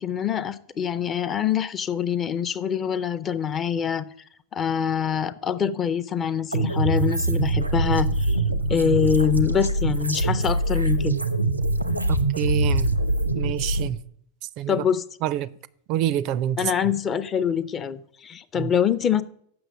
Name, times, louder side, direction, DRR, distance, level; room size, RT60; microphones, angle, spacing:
voice 1, 0.0-4.0 4.5-8.4 8.7-11.2 14.7-15.0 16.6-19.2, left 8 dB, 25° left, 0.5 m, -25 dB
sound 1, 6.5-13.9, right 2 dB, 85° right, 0.6 m, -23 dB
voice 2, 12.1-12.9 13.3-14.0 14.6-14.8 15.2-15.5 15.9-16.7 18.6-18.7, right 11 dB, 40° right, 0.4 m, -26 dB
7.8 x 6.1 x 6.6 m
figure-of-eight pair, 90°, 0 cm